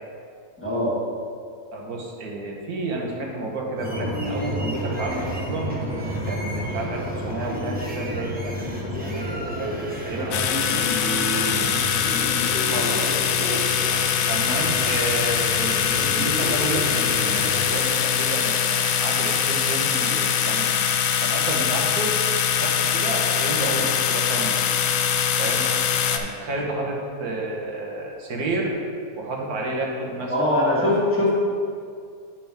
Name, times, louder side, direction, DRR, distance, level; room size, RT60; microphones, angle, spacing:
voice 1, 0.6-1.0 30.3-31.4, left 1 dB, 10° left, -6 dB, 1.8 m, -21 dB
voice 2, 1.7-5.8 6.2-8.6 8.9-13.3 14.3-20.8 21.2-22.2 22.5-24.6 25.4-25.7 26.1-28.8 29.2-30.3, right 2 dB, 75° right, -1 dB, 1.7 m, -31 dB
sound 1, 3.8-17.7, equal, 10° right, 0.8 m, -30 dB
sound 2, 10.3-26.2, left 8 dB, 70° left, 0.9 m, -23 dB
9.1 x 6.1 x 3.5 m, 2.3 s
omnidirectional pair, 1.6 m